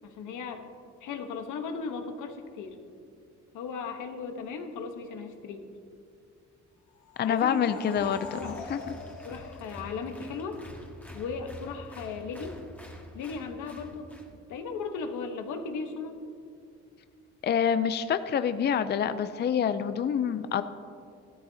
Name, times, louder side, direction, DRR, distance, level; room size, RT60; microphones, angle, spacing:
voice 1, 0.0-0.7 1.0-2.8 3.5-5.7 7.2-7.7 8.1-8.6 9.2-10.6 11.1-12.6 13.1-14.1 14.5-16.2, left 5 dB, 85° left, 5 dB, 1.1 m, -37 dB
sound 1, 7.0-10.5, left 4 dB, 65° left, 1.5 m, -45 dB
voice 2, 7.2-8.8 17.4-20.6, left 8 dB, 35° left, 11 dB, 0.5 m, -27 dB
Applause, 7.7-14.3, left 1 dB, 5° left, 1.6 m, -47 dB
14.5 x 13.0 x 2.8 m, 2.4 s
cardioid pair, 90°, 30 cm